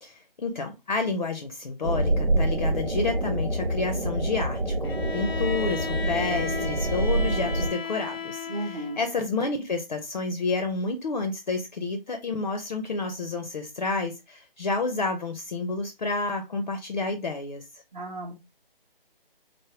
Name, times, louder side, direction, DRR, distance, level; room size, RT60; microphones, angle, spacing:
voice 1, 0.0-17.6, left 3 dB, 50° left, 0.5 m, -30 dB
sound 1, 1.8-7.7, right 1 dB, 85° right, 0.9 m, -26 dB
Bowed string instrument, 4.8-9.1, left 5 dB, 90° left, 0.8 m, -34 dB
voice 2, 8.5-9.0 17.9-18.3, right 1 dB, 45° right, 0.7 m, -34 dB
3.4 x 2.1 x 2.9 m
figure-of-eight pair, 160°, 29 cm